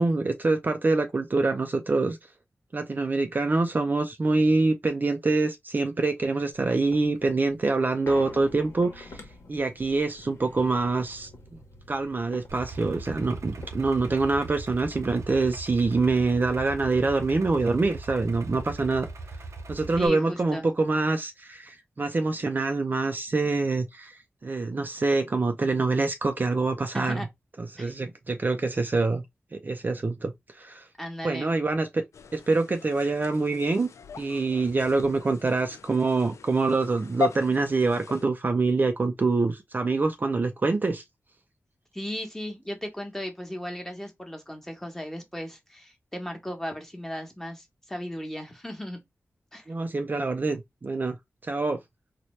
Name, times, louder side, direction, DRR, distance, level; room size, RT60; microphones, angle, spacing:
voice 1, 0.0-2.2 2.7-9.2 9.5-11.3 11.9-19.1 19.7-27.2 27.6-29.2 29.5-30.3 30.6-30.9 31.2-32.0 32.3-33.9 34.2-41.0 49.7-51.2 51.4-51.8, right 3 dB, 40° right, 0.4 m, -25 dB
sound 1, 6.4-15.1 15.5-15.6 15.9-17.2 17.7-17.8, left 2 dB, 75° left, 1.0 m, -49 dB
Idling, 12.5-20.1, right 3 dB, 90° right, 0.6 m, -40 dB
voice 2, 20.0-20.7 26.9-27.3 27.8-27.9 31.0-31.6 41.9-49.0 49.5-49.7, equal, 10° left, 1.1 m, -36 dB
sound 2, 32.1-38.3, left 5 dB, 90° left, 0.3 m, -38 dB
4.1 x 2.2 x 3.1 m
wide cardioid pair, 95°, 5 cm